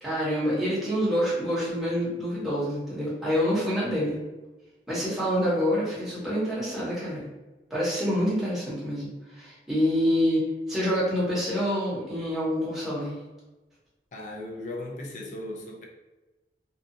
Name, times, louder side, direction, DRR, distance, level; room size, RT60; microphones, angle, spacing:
voice 1, 0.0-4.2 4.9-7.3 7.7-13.2, equal, ahead, 0.8 m, -27 dB
voice 2, 14.1-15.9, left 1 dB, 45° left, 0.4 m, -37 dB
2.7 x 2.3 x 2.5 m
head